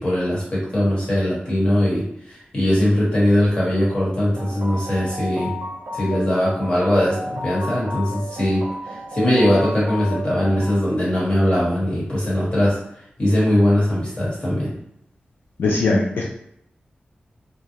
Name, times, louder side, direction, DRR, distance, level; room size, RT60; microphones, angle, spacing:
voice 1, 0.0-2.0 2.5-5.5 5.9-8.6 9.1-12.8 13.2-14.7, left 1 dB, 30° left, -7 dB, 1.3 m, -20 dB
sound 1, 4.3-10.7, left 1 dB, 70° right, 0.5 m, -33 dB
voice 2, 15.6-16.2, left 3 dB, 85° left, -3 dB, 0.4 m, -19 dB
2.4 x 2.0 x 2.8 m, 0.74 s
wide cardioid pair, 105°, 3 cm